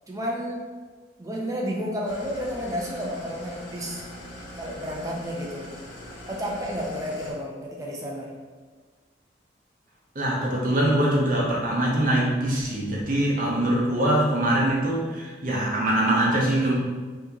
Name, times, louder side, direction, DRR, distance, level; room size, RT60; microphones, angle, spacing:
voice 1, 0.1-0.7 1.2-4.0 4.6-5.7 6.3-8.3, equal, 20° right, -2 dB, 0.5 m, -31 dB
Engine starting / Idling, 2.1-7.3, left 1 dB, 85° left, 0.7 m, -41 dB
voice 2, 10.1-16.7, right 1 dB, 45° right, -4 dB, 0.8 m, -23 dB
2.8 x 2.7 x 3.6 m, 1.4 s
head